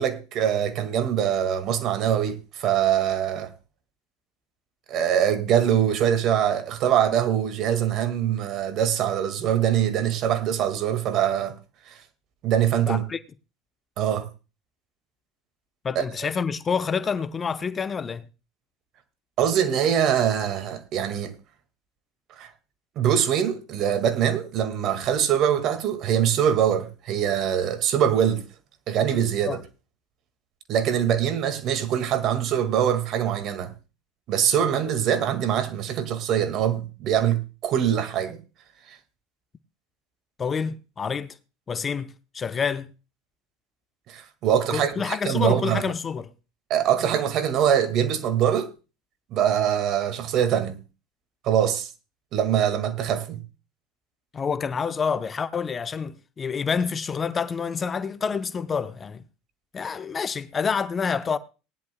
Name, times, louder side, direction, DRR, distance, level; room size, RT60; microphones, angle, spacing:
voice 1, 0.0-3.5 4.9-11.6 11.9-12.0 12.4-13.0 14.0-14.3 16.0-16.1 19.4-21.3 22.4-22.5 23.0-28.4 28.9-29.6 30.7-33.7 34.3-38.4 44.1-45.8 46.7-48.7 49.3-50.8 51.4-51.9 52.3-53.4, right 9 dB, 50° right, 1.8 m, -23 dB
voice 2, 12.8-13.2 15.8-18.3 29.4-29.6 40.4-41.3 41.7-42.9 44.7-46.3 54.3-59.2 59.7-61.4, left 6 dB, 30° left, 0.8 m, -28 dB
19.0 x 10.5 x 2.2 m
hypercardioid pair, 85°, 0 cm